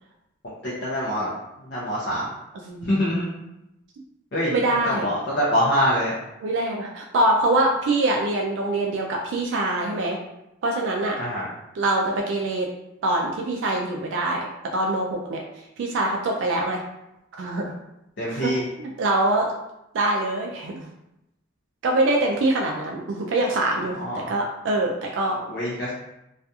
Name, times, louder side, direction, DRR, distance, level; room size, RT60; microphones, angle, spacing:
voice 1, 0.4-1.3 1.7-2.3 2.8-3.3 4.3-4.5 4.9-6.1 11.2-11.5 18.2-18.6 24.0-24.3 25.5-25.9, equal, 55° left, -8 dB, 0.6 m, -24 dB
voice 2, 2.6-3.0 4.5-5.1 6.4-10.2 10.6-11.2 11.7-12.7 13.0-16.8 17.4-17.7 18.3-18.5 18.8-19.5 19.9-20.9 21.8-25.4, right 2 dB, 65° right, 0 dB, 0.3 m, -24 dB
2.7 x 2.4 x 2.3 m, 0.89 s
head